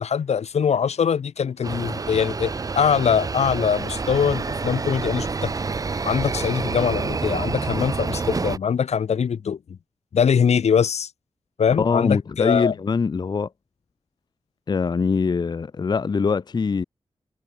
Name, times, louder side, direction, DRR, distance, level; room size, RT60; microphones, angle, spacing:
voice 1, 0.0-5.5 6.0-9.6 10.1-11.1 11.6-12.7, left 7 dB, 90° left, 1.2 m, -22 dB
sound 1, 1.6-8.6, right 4 dB, 35° right, 0.5 m, -28 dB
voice 2, 11.8-13.5 14.7-16.8, left 5 dB, 40° left, 0.5 m, -23 dB
wide cardioid pair, 85°, 11 cm